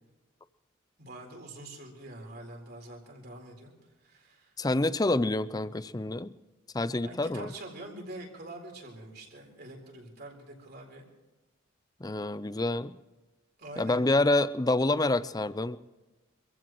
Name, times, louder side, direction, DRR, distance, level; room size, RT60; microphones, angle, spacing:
voice 1, 1.0-3.7 4.0-4.5 6.9-11.0 13.6-14.0, right 1 dB, 50° right, 1 dB, 4.2 m, -45 dB
voice 2, 4.6-6.3 6.7-7.5 12.0-12.9 13.8-15.8, left 2 dB, 20° left, 15 dB, 0.5 m, -27 dB
26.0 x 15.5 x 3.1 m, 1.1 s
head